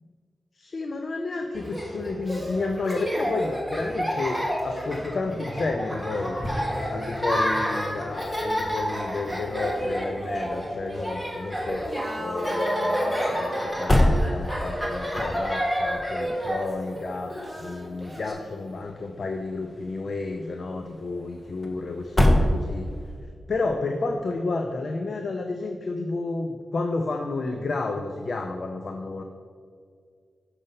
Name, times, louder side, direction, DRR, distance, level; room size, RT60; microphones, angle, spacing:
voice 1, 0.6-6.4 6.9-11.9 12.2-22.9 23.5-29.2, left 3 dB, 60° left, 4 dB, 0.5 m, -31 dB
Laughter, 1.5-18.3, equal, 5° left, 1.7 m, -30 dB
sound 1, 5.1-23.2, left 1 dB, 20° left, 0.9 m, -30 dB
6.8 x 5.3 x 5.5 m, 2.1 s
wide cardioid pair, 95°, 0 cm